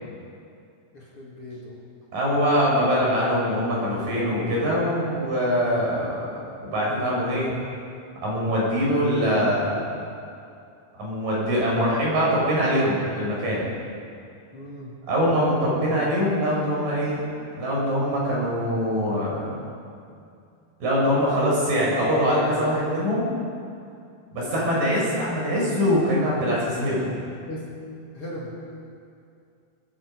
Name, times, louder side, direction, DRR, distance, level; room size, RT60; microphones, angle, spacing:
voice 1, 0.9-1.8 14.5-14.9 20.1-20.3 24.4-24.7 27.5-27.7 28.1-28.6, left 1 dB, 35° left, -5 dB, 3.4 m, -39 dB
voice 2, 2.1-6.3 6.6-7.6 8.2-10.0 10.9-13.6 15.1-17.2 17.6-19.5 20.8-23.3 24.3-27.1, equal, 60° right, -5 dB, 7.8 m, -23 dB
22.0 x 21.0 x 5.6 m, 2.4 s
omnidirectional pair, 4.4 m